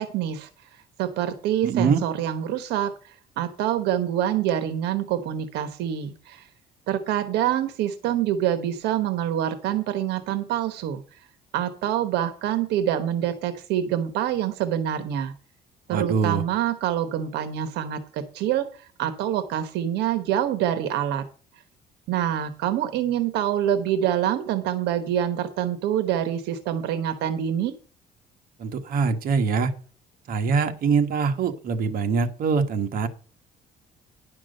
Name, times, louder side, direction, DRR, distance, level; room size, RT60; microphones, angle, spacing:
voice 1, 0.0-6.5 6.9-11.2 11.5-15.3 15.9-21.2 22.1-27.7, right 10 dB, 85° right, 10 dB, 1.1 m, -26 dB
voice 2, 1.6-2.0 15.9-16.4 28.6-29.7 30.3-33.1, right 5 dB, 60° right, 6 dB, 1.4 m, -23 dB
10.5 x 6.1 x 6.4 m, 0.38 s
cardioid pair, 110°, 17 cm